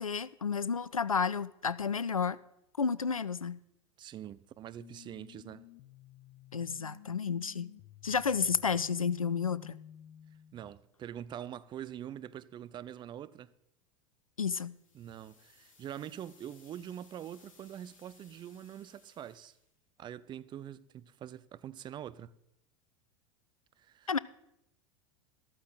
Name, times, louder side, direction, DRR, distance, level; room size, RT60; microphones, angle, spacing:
voice 1, 0.0-2.4 2.8-3.6 6.5-7.7 8.0-9.8 14.4-14.7 24.1-24.2, left 6 dB, 90° left, 0.4 m, -31 dB
voice 2, 4.0-5.7 10.5-13.5 14.9-19.6 20.0-22.3 23.8-24.2, right 10 dB, 25° right, 0.5 m, -44 dB
sound 1, 4.8-10.7, left 11 dB, 45° left, 0.7 m, -53 dB
sound 2, 14.7-19.7, left 4 dB, 70° left, 2.6 m, -63 dB
13.5 x 13.5 x 3.9 m
figure-of-eight pair, 85°, 17 cm